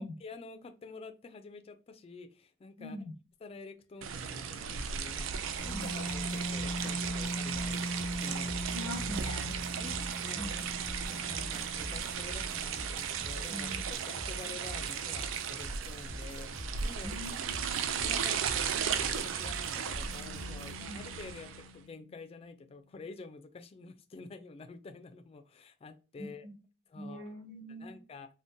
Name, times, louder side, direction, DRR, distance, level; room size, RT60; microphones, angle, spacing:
voice 1, 0.0-3.0 3.4-8.5 9.8-10.5 11.0-13.7 14.1-26.5 26.9-27.3 27.7-28.3, left 4 dB, 30° left, 9 dB, 0.3 m, -49 dB
voice 2, 2.8-3.1 5.7-5.9 8.7-9.6 10.3-10.7 13.5-13.8 17.0-18.1 20.8-21.0 26.2-26.5 26.9-28.0, equal, 70° right, -5 dB, 1.6 m, -43 dB
sound 1, 4.0-21.7, right 7 dB, 90° right, 0.4 m, -36 dB
sound 2, 5.0-14.3 19.9-22.4, equal, 90° left, 0.5 m, -42 dB
sound 3, 5.6-20.8, equal, 40° right, 0.7 m, -46 dB
3.6 x 2.1 x 2.5 m, 0.34 s
head